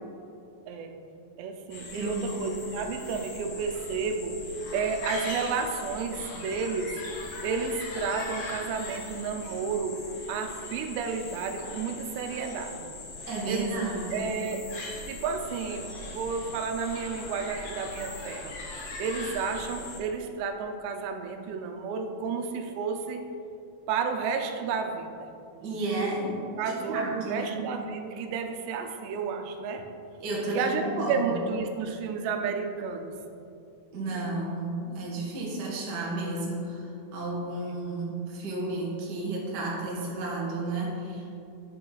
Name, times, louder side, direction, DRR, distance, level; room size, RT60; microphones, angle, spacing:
voice 1, 0.7-1.0 1.4-7.0 7.4-10.0 10.3-12.9 13.5-14.7 15.1-18.5 19.0-23.2 23.9-25.3 26.6-29.8 30.5-33.1 37.5-37.8, right 5 dB, 90° right, 5 dB, 2.9 m, -31 dB
sound 1, 1.7-20.0, left 2 dB, 75° left, 1.5 m, -40 dB
voice 2, 1.9-2.3 13.3-14.3 25.6-27.8 30.2-31.2 33.9-41.2, right 2 dB, 65° right, -4 dB, 1.0 m, -32 dB
9.0 x 6.8 x 4.0 m, 2.6 s
omnidirectional pair, 4.8 m